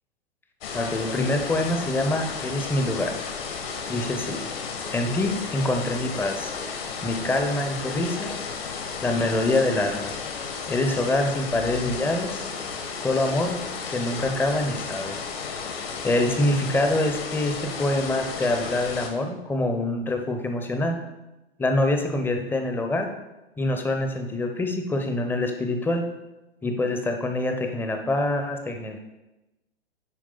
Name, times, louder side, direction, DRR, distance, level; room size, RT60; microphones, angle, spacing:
sound 1, 0.6-19.1, left 5 dB, 60° left, 1.6 m, -33 dB
voice 1, 0.7-3.1 3.9-4.4 4.9-6.5 7.0-8.3 9.0-10.1 10.7-12.4 13.0-13.6 13.9-15.2 16.0-21.0 21.6-23.1 23.6-26.0 26.6-29.0, left 2 dB, 5° left, 5 dB, 0.7 m, -25 dB
9.0 x 4.9 x 3.9 m, 1.0 s
hypercardioid pair, 115°, 32 cm